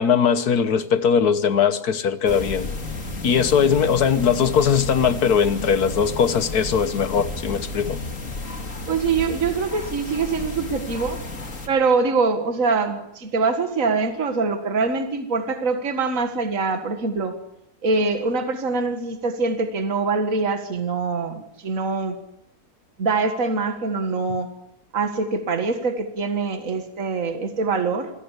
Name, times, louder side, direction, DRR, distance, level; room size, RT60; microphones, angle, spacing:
voice 1, 0.0-2.7 3.2-8.0, left 7 dB, 75° left, 12 dB, 1.7 m, -20 dB
sound 1, 2.3-11.7, left 2 dB, 55° left, 2.9 m, -32 dB
voice 2, 8.9-11.2 11.7-17.4 17.8-22.2 23.0-24.5 24.9-28.1, right 4 dB, 55° right, 7 dB, 2.2 m, -24 dB
27.5 x 17.0 x 8.3 m, 0.82 s
omnidirectional pair, 1.7 m